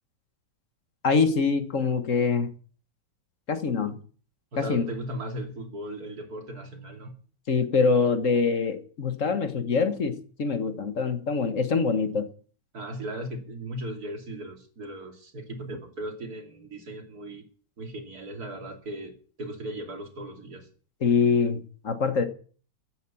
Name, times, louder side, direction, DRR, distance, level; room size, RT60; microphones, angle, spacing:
voice 1, 1.0-2.5 3.5-4.0 4.6-4.8 7.5-12.3 21.0-22.3, left 5 dB, 40° left, 1.5 m, -24 dB
voice 2, 4.5-7.2 12.7-17.5 17.8-20.7, right 1 dB, 45° right, 3.1 m, -37 dB
14.5 x 9.4 x 7.1 m
omnidirectional pair, 2.4 m